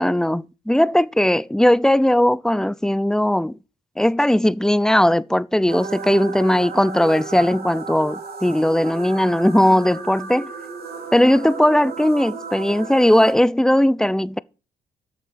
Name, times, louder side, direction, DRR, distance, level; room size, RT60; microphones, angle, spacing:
voice 1, 0.0-3.6 4.0-10.5 11.1-14.4, left 1 dB, 5° left, 0.5 m, -18 dB
sound 1, 5.7-13.3, right 5 dB, 65° right, 2.9 m, -34 dB
8.1 x 6.7 x 7.4 m
cardioid pair, 75°, 17 cm